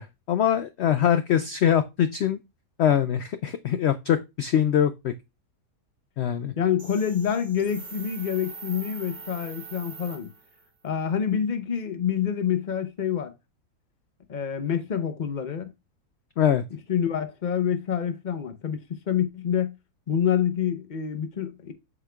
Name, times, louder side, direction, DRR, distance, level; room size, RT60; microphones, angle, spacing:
voice 1, 0.0-2.4 2.8-5.1 6.2-6.5 16.4-16.6, left 9 dB, 80° left, 0.6 m, -23 dB
voice 2, 6.6-10.3 10.8-13.3 14.3-15.7 16.9-19.7 20.1-21.7, left 8 dB, 40° left, 0.7 m, -27 dB
sound 1, 6.8-10.7, right 4 dB, 40° right, 1.1 m, -42 dB
8.0 x 5.9 x 2.3 m
omnidirectional pair, 1.7 m